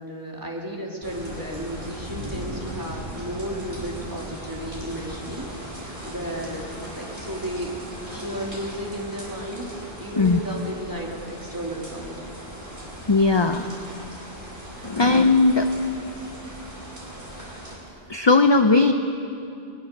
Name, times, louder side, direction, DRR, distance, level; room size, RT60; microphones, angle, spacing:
voice 1, 0.0-7.7 8.1-12.2, equal, 20° right, -2 dB, 2.8 m, -34 dB
sound 1, 1.0-17.8, equal, 50° right, 4.7 m, -38 dB
voice 2, 13.1-13.7 14.8-15.7 18.1-18.9, left 3 dB, 30° left, 7 dB, 0.6 m, -18 dB
20.5 x 19.5 x 6.6 m, 2.7 s
omnidirectional pair, 1.1 m